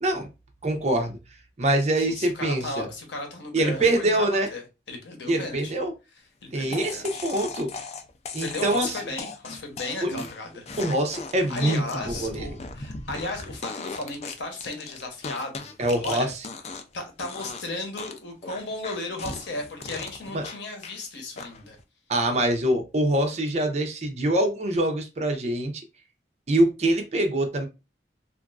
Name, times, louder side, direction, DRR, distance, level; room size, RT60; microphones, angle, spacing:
voice 1, 0.6-1.2 1.6-2.9 3.5-4.5 5.3-5.9 6.5-7.7 8.3-9.0 10.0-10.3 10.8-12.5 15.8-16.3 20.3-20.4 22.1-25.7 26.5-27.7, right 1 dB, 40° right, 4 dB, 0.6 m, -24 dB
voice 2, 2.1-5.7 6.4-7.3 8.4-10.6 11.5-16.3 16.7-21.8, left 2 dB, 85° left, 3 dB, 1.0 m, -35 dB
sound 1, 6.7-16.9 17.2-17.7 18.0-21.0 21.4-21.8, left 4 dB, 35° left, 0.4 m, -38 dB
3.0 x 2.4 x 2.4 m, 0.27 s
head